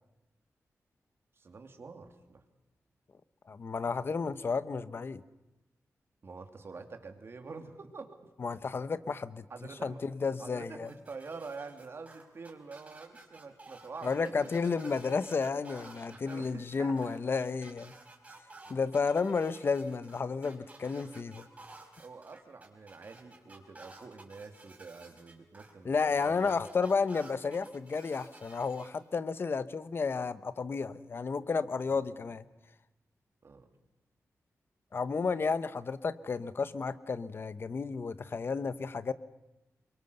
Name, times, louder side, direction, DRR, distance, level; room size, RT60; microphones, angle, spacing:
voice 1, 1.4-2.4 6.2-8.2 9.5-10.0 10.4-14.5 16.1-17.1 22.0-26.6 31.9-32.0 33.4-33.7, right 4 dB, 45° right, 5 dB, 2.7 m, -47 dB
voice 2, 3.5-5.2 8.4-9.4 9.8-10.9 14.0-17.9 18.7-21.5 25.8-32.4 34.9-39.1, left 4 dB, 45° left, 14 dB, 0.9 m, -32 dB
sound 1, 10.9-28.9, right 3 dB, 25° right, 4.4 m, -53 dB
28.0 x 24.0 x 6.9 m, 1.0 s
wide cardioid pair, 160°, 6 cm